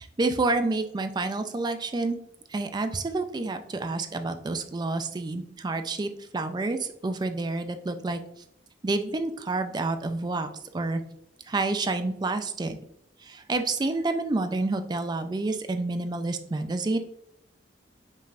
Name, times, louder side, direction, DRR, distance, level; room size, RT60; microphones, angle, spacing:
voice 1, 0.0-2.2 2.5-8.2 8.8-10.5 10.7-11.0 11.5-12.8 13.2-17.0, right 3 dB, 25° right, 8 dB, 0.3 m, -29 dB
5.4 x 3.3 x 2.5 m, 0.74 s
head